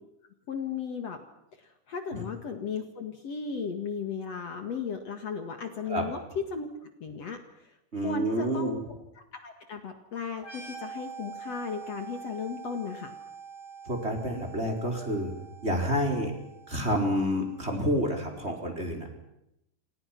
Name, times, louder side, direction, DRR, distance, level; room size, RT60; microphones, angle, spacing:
voice 1, 0.5-1.2 1.6-6.2 6.5-6.7 7.0-7.7 8.0-13.1, left 6 dB, 55° left, 6 dB, 2.8 m, -36 dB
voice 2, 7.9-8.8 13.9-15.3 15.6-16.3 16.7-19.1, equal, 20° right, 3 dB, 4.8 m, -29 dB
sound 1, 10.4-17.9, right 6 dB, 20° left, 5.7 m, -45 dB
29.0 x 28.0 x 6.0 m, 0.85 s
omnidirectional pair, 3.8 m